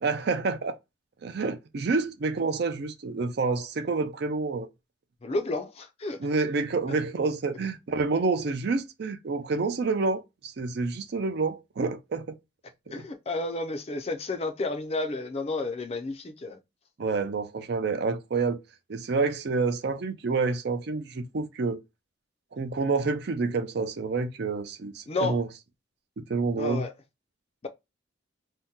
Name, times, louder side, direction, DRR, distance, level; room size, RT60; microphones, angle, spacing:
voice 1, 0.0-0.8 1.2-4.7 6.2-12.4 17.0-18.6 18.9-21.8 22.5-25.5 26.2-26.8, right 4 dB, 55° right, 0.4 m, -28 dB
voice 2, 5.2-6.3 6.9-7.0 12.9-16.6 25.1-25.4 26.6-26.9, left 2 dB, 30° left, 0.4 m, -31 dB
2.7 x 2.2 x 3.6 m
head